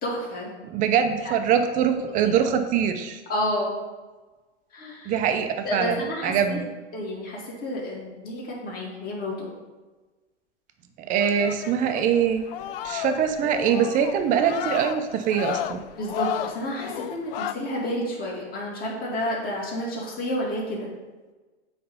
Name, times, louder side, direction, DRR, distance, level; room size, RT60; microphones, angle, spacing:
voice 1, 0.0-0.5 1.2-1.3 2.2-2.3 3.3-3.7 4.7-5.2 5.6-6.6 6.9-9.5 16.0-20.9, left 1 dB, 25° left, -3 dB, 2.0 m, -30 dB
voice 2, 0.6-3.2 5.1-6.7 11.0-12.4 12.8-15.8, right 8 dB, 25° right, 7 dB, 0.5 m, -23 dB
sound 1, 11.2-17.5, left 12 dB, 55° left, 0.4 m, -33 dB
8.5 x 3.3 x 5.4 m, 1.2 s
hypercardioid pair, 125°, 35 cm